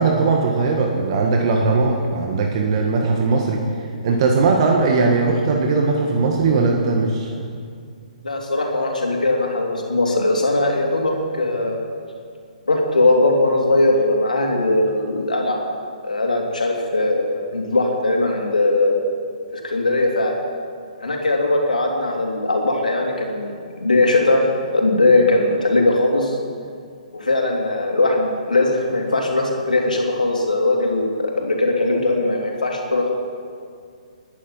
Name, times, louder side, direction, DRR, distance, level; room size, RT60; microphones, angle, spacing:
voice 1, 0.0-3.6 4.0-7.5, right 3 dB, 45° right, 1 dB, 1.7 m, -19 dB
voice 2, 8.2-11.8 12.7-15.6 16.0-19.0 19.5-20.4 21.0-24.5 24.7-26.4 27.1-33.1, left 2 dB, 85° left, 0 dB, 3.4 m, -19 dB
21.5 x 10.5 x 5.7 m, 2.2 s
figure-of-eight pair, 135°, 4 cm